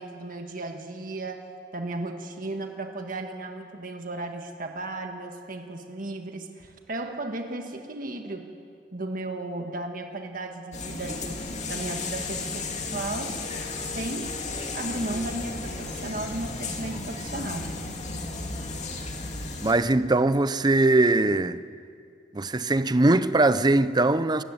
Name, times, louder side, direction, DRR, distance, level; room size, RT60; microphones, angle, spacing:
voice 1, 0.0-8.5 8.9-12.6 12.9-13.4 13.8-14.4 14.7-17.7, right 2 dB, 50° right, 1.6 m, -35 dB
sound 1, 10.7-19.7, left 3 dB, 40° left, 2.4 m, -34 dB
voice 2, 19.6-21.6 22.3-24.4, right 2 dB, 25° right, 0.7 m, -21 dB
26.0 x 14.0 x 9.6 m
head